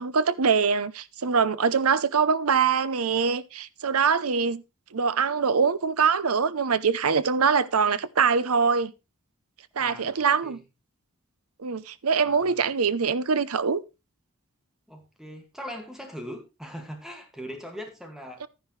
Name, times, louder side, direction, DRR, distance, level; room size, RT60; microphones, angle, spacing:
voice 1, 0.0-4.6 4.9-8.9 9.8-10.6 11.6-13.8 18.4-18.5, right 5 dB, 85° right, 0.7 m, -23 dB
voice 2, 9.8-10.6 12.3-12.5 14.9-18.4, equal, ahead, 2.1 m, -40 dB
11.5 x 10.0 x 3.2 m
head